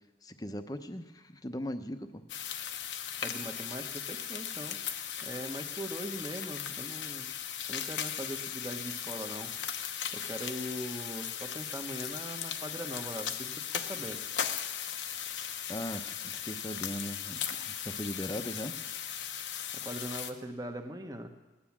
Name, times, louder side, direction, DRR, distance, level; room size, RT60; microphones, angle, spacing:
voice 1, 0.2-2.2 15.3-18.7, equal, 20° left, 8 dB, 0.8 m, -39 dB
sound 1, 2.3-20.3, left 9 dB, 85° left, 0.9 m, -37 dB
voice 2, 3.2-4.8 5.2-7.3 7.7-9.5 10.1-14.2 19.7-21.3, right 1 dB, 20° right, 5 dB, 1.0 m, -41 dB
18.5 x 10.0 x 7.3 m, 1.2 s
head